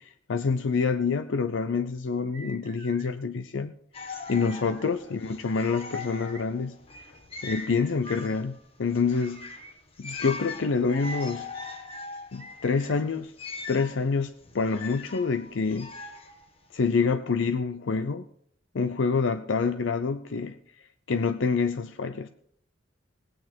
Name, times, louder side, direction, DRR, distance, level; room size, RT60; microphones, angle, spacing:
voice 1, 0.0-3.7 4.3-6.8 7.4-9.6 10.0-11.5 12.3-13.3 13.7-15.9 16.7-18.3 18.7-20.6 21.1-22.3, left 4 dB, 70° left, 10 dB, 0.5 m, -27 dB
sound 1, 2.3-3.1 4.3-4.9 5.9-6.4 7.4-8.2 9.2-9.7 10.8-11.3 12.4-13.0, right 2 dB, 25° right, 1.8 m, -47 dB
sound 2, 3.9-16.9, left 4 dB, 30° left, 1.3 m, -41 dB
18.5 x 8.8 x 4.4 m, 0.67 s
head